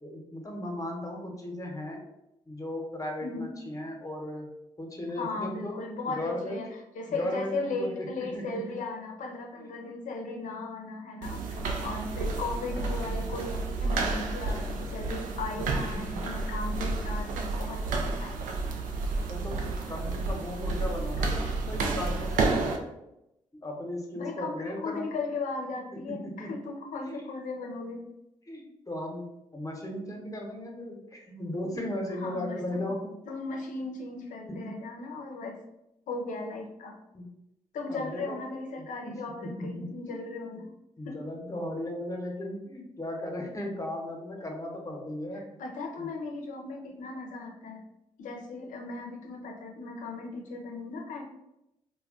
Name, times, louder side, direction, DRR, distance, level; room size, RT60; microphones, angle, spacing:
voice 1, 0.0-2.0 2.5-4.5 4.8-5.8 6.1-6.6 7.1-8.1 8.3-8.4 9.6-9.7 15.7-16.0 19.3-22.6 23.6-25.1 26.1-26.5 27.0-27.3 28.5-29.2 29.5-33.1 34.5-34.8 37.1-37.3 37.9-38.4 38.8-39.1 39.4-40.3 41.0-45.4 46.0-46.1, left 1 dB, 25° left, 1 dB, 0.9 m, -36 dB
voice 2, 3.2-3.6 5.2-6.7 6.9-18.6 21.2-21.6 24.1-28.1 32.1-32.8 33.2-35.6 36.1-37.0 37.7-40.7 41.0-41.2 44.0-44.2 45.6-47.8 48.2-51.2, left 3 dB, 70° left, 2 dB, 0.6 m, -37 dB
sound 1, 11.2-22.8, right 3 dB, 75° right, 0.4 m, -31 dB
2.2 x 2.2 x 3.6 m, 0.87 s
supercardioid pair, 50°, 14 cm